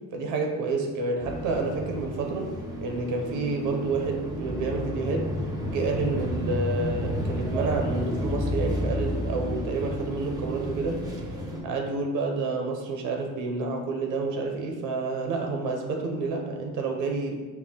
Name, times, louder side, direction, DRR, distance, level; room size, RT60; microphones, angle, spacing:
voice 1, 0.1-2.5 2.8-5.3 5.7-11.1 11.6-17.4, right 3 dB, 85° right, 3 dB, 0.6 m, -29 dB
sound 1, 1.2-11.6, equal, 10° right, 0.7 m, -31 dB
4.2 x 2.1 x 3.6 m, 1.3 s
cardioid pair, 90°, 30 cm